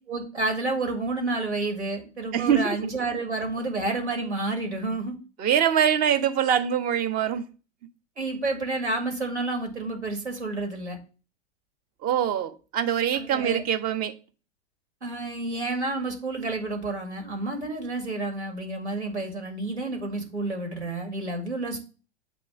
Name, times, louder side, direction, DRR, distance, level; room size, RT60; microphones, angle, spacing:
voice 1, 0.1-5.2 8.2-11.0 13.1-13.6 15.0-21.8, right 2 dB, 80° right, 2.2 m, -30 dB
voice 2, 2.3-2.8 5.4-7.5 12.0-14.1, right 9 dB, 25° right, 0.7 m, -24 dB
7.7 x 3.1 x 6.1 m
figure-of-eight pair, 95°, 34 cm